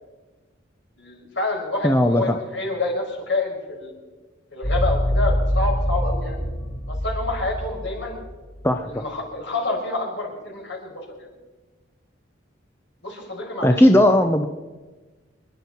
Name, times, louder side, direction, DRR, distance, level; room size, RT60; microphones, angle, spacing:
voice 1, 1.0-3.9 4.5-6.4 6.9-8.2 8.8-11.3 13.0-13.9, left 2 dB, 70° left, -1 dB, 5.4 m, -28 dB
voice 2, 1.8-2.4 8.6-9.0 13.6-14.5, left 1 dB, 15° left, 5 dB, 0.7 m, -17 dB
sound 1, 4.6-8.2 8.6-8.7, equal, 45° left, 4.6 m, -24 dB
26.5 x 11.5 x 4.5 m, 1.2 s
head